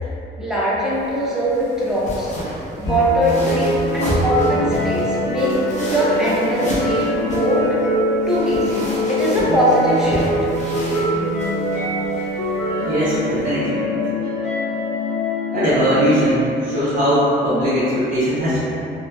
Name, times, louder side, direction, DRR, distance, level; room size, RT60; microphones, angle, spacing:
voice 1, 0.4-2.3 2.8-5.6 5.9-7.8 8.3-10.3, equal, 5° right, -8 dB, 0.6 m, -21 dB
sound 1, 0.9-13.5, equal, 35° left, 0.7 m, -31 dB
sound 2, 2.8-16.1, equal, 75° left, 0.9 m, -23 dB
voice 2, 12.9-13.8 15.5-18.6, equal, 40° right, -11 dB, 0.7 m, -19 dB
2.7 x 2.1 x 2.2 m, 2.8 s
cardioid pair, 90°, 20 cm